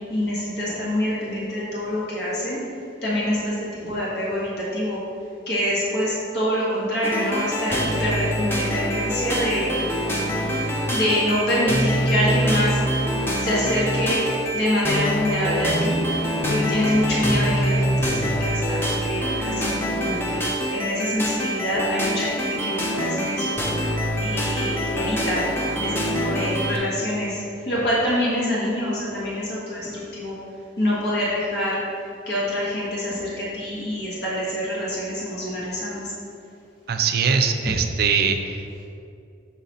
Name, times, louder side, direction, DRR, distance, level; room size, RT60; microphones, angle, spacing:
voice 1, 0.1-2.6 3.0-5.0 5.5-9.7 10.9-12.8 13.4-14.2 14.5-16.0 16.5-23.6 24.2-25.5 25.8-30.3 30.8-31.8 32.3-36.1, equal, 60° left, -7 dB, 1.5 m, -25 dB
sound 1, 7.0-26.8, equal, 15° left, 0.6 m, -25 dB
voice 2, 36.9-38.8, right 6 dB, 55° right, 7 dB, 0.4 m, -22 dB
6.8 x 4.0 x 4.1 m, 2.5 s
head